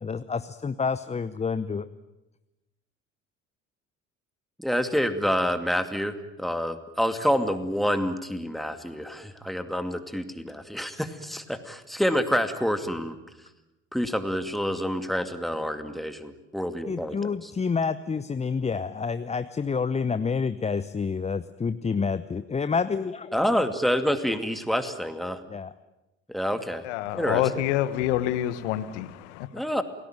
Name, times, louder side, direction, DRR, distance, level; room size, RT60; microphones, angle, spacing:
voice 1, 0.0-1.9 16.9-23.3 25.5-25.7, left 5 dB, 20° left, 13 dB, 0.9 m, -28 dB
voice 2, 4.6-13.2 13.9-17.5 23.3-25.4 26.3-26.8 27.1-27.4 29.5-29.8, equal, ahead, 9 dB, 2.5 m, -27 dB
voice 3, 26.8-29.5, left 13 dB, 65° left, 13 dB, 1.4 m, -27 dB
28.5 x 19.0 x 9.2 m, 0.98 s
figure-of-eight pair, 60°, 37 cm